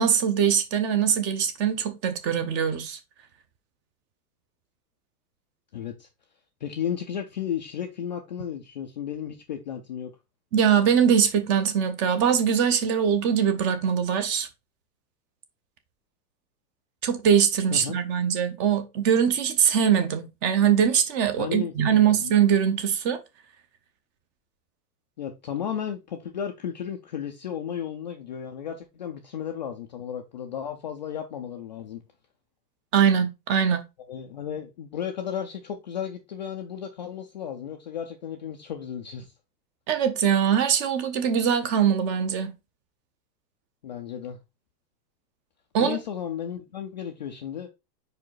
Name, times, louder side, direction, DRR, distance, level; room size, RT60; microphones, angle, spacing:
voice 1, 0.0-3.0 10.5-14.5 17.0-23.2 32.9-33.8 39.9-42.5 45.7-46.0, right 8 dB, 25° right, 0.6 m, -22 dB
voice 2, 5.7-6.1 6.6-10.1 17.7-18.0 21.4-22.4 25.2-32.0 34.1-39.3 43.8-44.4 45.8-47.7, left 8 dB, 30° left, 0.3 m, -34 dB
4.8 x 4.8 x 4.4 m
hypercardioid pair, 150°, 49 cm